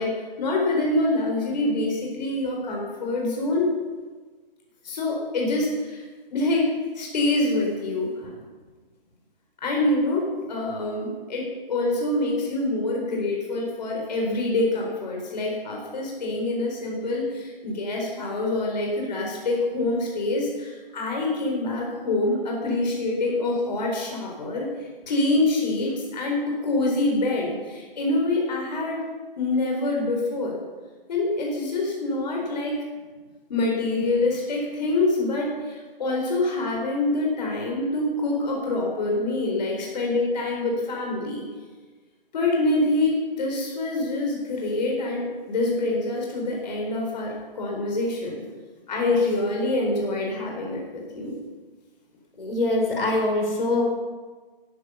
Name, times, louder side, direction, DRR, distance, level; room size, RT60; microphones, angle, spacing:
voice 1, 0.0-3.7 4.8-8.3 9.6-29.0 29.4-30.6 31.1-32.8 33.5-41.4 42.3-48.4 48.9-51.4, left 2 dB, 45° left, -1 dB, 4.1 m, -26 dB
voice 2, 52.4-53.8, left 2 dB, 70° left, 1 dB, 4.3 m, -23 dB
14.0 x 11.5 x 7.0 m, 1.4 s
figure-of-eight pair, 140°, 29 cm